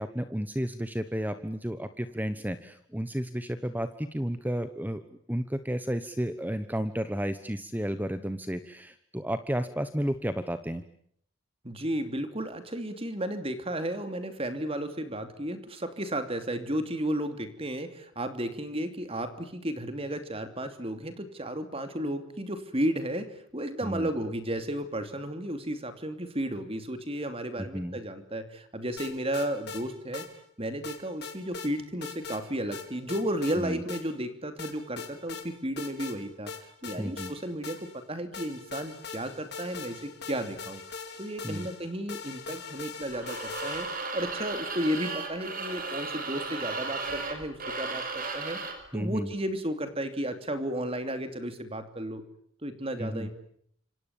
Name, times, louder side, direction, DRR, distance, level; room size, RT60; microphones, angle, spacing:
voice 1, 0.0-5.0 5.3-10.8 23.8-24.1 27.6-28.0 33.6-33.8 37.0-37.3 41.4-41.7 48.9-49.3 53.0-53.3, equal, 10° right, 11 dB, 1.1 m, -32 dB
voice 2, 11.6-30.3 30.6-36.5 36.8-40.8 41.2-43.9 44.1-48.6 48.9-52.2 52.6-53.3, right 1 dB, 30° right, 9 dB, 2.9 m, -33 dB
sound 1, 29.0-29.8 30.1-30.3 30.8-31.7 32.0-32.4 32.7-33.6 33.9-34.0 34.6-35.4 35.8-36.2 36.5-38.0 38.3-44.1, left 5 dB, 55° left, 4.7 m, -41 dB
sound 2, 43.1-48.9, right 3 dB, 45° right, 5.5 m, -35 dB
30.0 x 27.0 x 7.2 m, 0.66 s
head